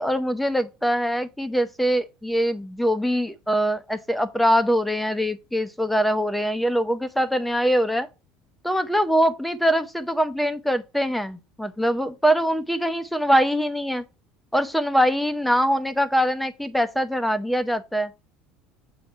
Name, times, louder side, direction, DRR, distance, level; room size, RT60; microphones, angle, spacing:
voice 1, 0.0-8.1 8.6-14.0 14.5-18.1, equal, 5° left, 0.7 m, -23 dB
8.2 x 2.8 x 5.5 m
cardioid pair, 135°, 3 cm